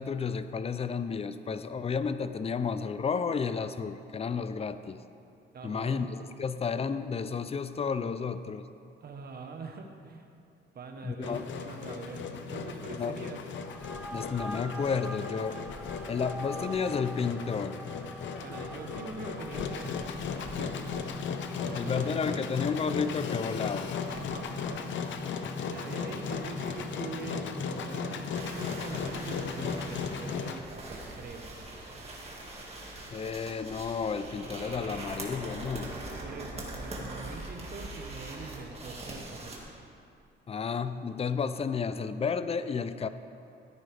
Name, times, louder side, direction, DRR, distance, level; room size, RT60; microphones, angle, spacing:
voice 1, 0.0-5.0 5.6-8.7 11.0-11.4 12.9-13.2 14.1-15.6 16.1-17.8 21.7-23.9 33.1-35.9 40.5-43.1, left 5 dB, 30° left, 12 dB, 0.5 m, -32 dB
voice 2, 5.5-6.1 9.0-10.3 10.7-13.4 18.4-20.1 20.5-20.9 21.6-22.5 24.1-25.2 25.6-31.5 36.2-39.6, right 4 dB, 50° right, 4 dB, 1.2 m, -43 dB
Engine, 11.2-30.6, left 6 dB, 70° left, 0.8 m, -36 dB
sound 1, 13.6-31.5, right 1 dB, 5° right, 0.7 m, -47 dB
sound 2, 28.3-39.6, right 1 dB, 30° right, 2.1 m, -42 dB
14.0 x 9.0 x 3.5 m, 2.5 s
cardioid pair, 90°, 20 cm